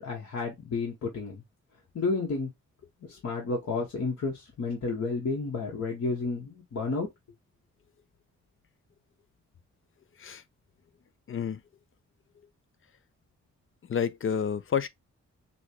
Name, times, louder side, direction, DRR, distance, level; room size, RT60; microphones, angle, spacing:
voice 1, 0.0-1.4 1.9-2.5 3.0-7.1, left 3 dB, 60° left, 1.4 m, -31 dB
voice 2, 11.3-11.6 13.9-14.9, left 7 dB, 45° left, 0.5 m, -29 dB
6.0 x 2.3 x 2.9 m
cardioid pair, 100°, 29 cm